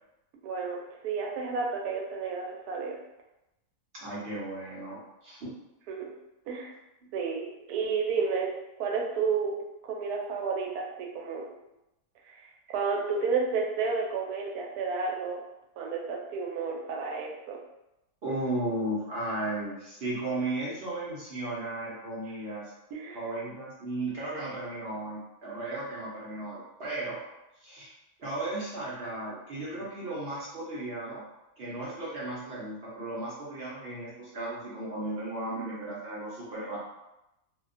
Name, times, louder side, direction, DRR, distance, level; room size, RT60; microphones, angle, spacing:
voice 1, 0.4-3.0 5.9-6.1 6.5-6.7 7.1-8.5 8.8-9.6 9.8-11.5 12.2-12.5 12.7-15.4 15.8-17.6 22.9-23.2, right 5 dB, 90° right, 0 dB, 1.1 m, -31 dB
voice 2, 3.9-5.5 18.2-22.7 23.1-27.2 27.6-27.9 28.2-31.2 31.6-36.8, right 2 dB, 55° right, -7 dB, 0.7 m, -35 dB
2.7 x 2.2 x 2.4 m, 0.92 s
omnidirectional pair, 1.6 m